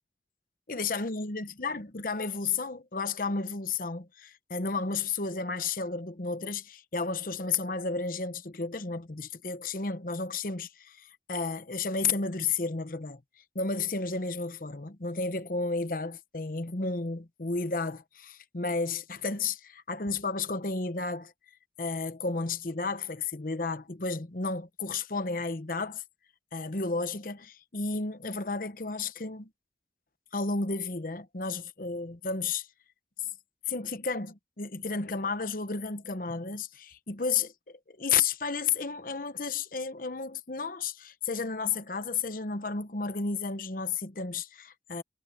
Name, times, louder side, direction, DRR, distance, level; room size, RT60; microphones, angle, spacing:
voice 1, 0.7-13.2 13.5-21.3 21.8-26.0 26.5-29.5 30.3-32.7 33.7-45.0, left 4 dB, 50° left, 1.0 m, -32 dB
head